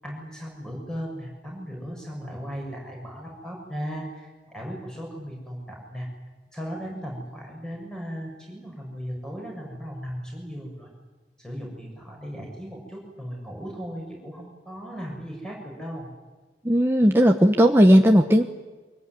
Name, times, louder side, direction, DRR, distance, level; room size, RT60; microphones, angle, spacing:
voice 1, 0.0-4.3 4.5-6.1 6.5-10.9 11.4-16.1, equal, 5° left, -1 dB, 7.1 m, -36 dB
voice 2, 16.6-18.4, equal, 15° right, 2 dB, 1.1 m, -16 dB
25.5 x 22.5 x 9.7 m, 1.3 s
head